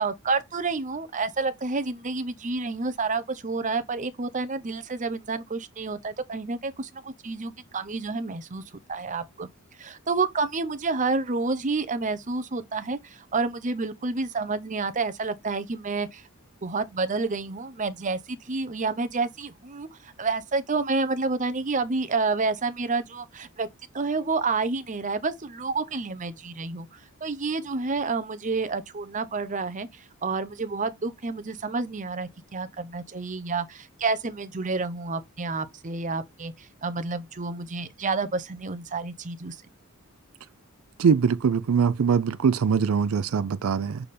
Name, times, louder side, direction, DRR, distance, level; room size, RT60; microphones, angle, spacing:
voice 1, 0.0-8.6 8.9-9.5 9.8-16.2 16.6-23.7 23.9-39.6, right 4 dB, 35° right, 0.7 m, -29 dB
voice 2, 41.0-44.0, right 6 dB, 70° right, 0.4 m, -22 dB
6.9 x 3.5 x 4.2 m
head